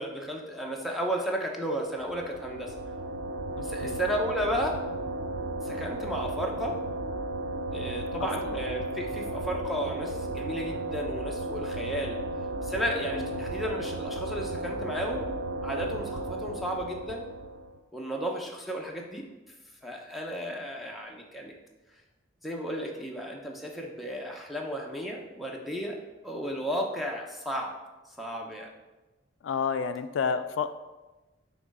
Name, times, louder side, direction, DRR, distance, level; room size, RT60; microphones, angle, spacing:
voice 1, 0.0-2.7 3.6-4.8 5.6-6.8 7.7-12.2 12.6-15.3 15.6-17.2 17.9-19.2 19.8-21.5 22.4-26.0 26.2-27.7 28.2-28.7, equal, ahead, -1 dB, 0.7 m, -33 dB
sound 1, 1.9-17.8, right 1 dB, 65° right, 0.4 m, -34 dB
voice 2, 3.6-4.0 8.2-8.6 13.1-13.5 29.4-30.7, left 6 dB, 75° left, 11 dB, 0.3 m, -31 dB
5.9 x 3.1 x 5.3 m, 1.1 s
head